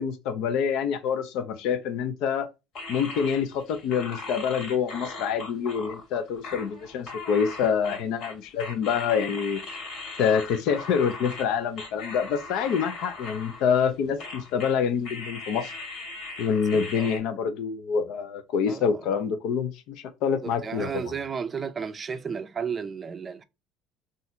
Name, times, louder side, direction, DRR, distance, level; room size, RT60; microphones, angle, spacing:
voice 1, 0.0-2.5 2.9-9.6 10.2-15.7 16.4-21.0, left 7 dB, 70° left, 0.7 m, -26 dB
sound 1, 2.7-11.5 11.8-13.9 14.2-14.7 15.0-17.2, left 3 dB, 55° left, 1.8 m, -39 dB
voice 2, 16.7-17.1 18.7-19.0 20.4-23.4, right 6 dB, 25° right, 0.4 m, -33 dB
4.1 x 2.5 x 2.7 m
cardioid pair, 130°, 0 cm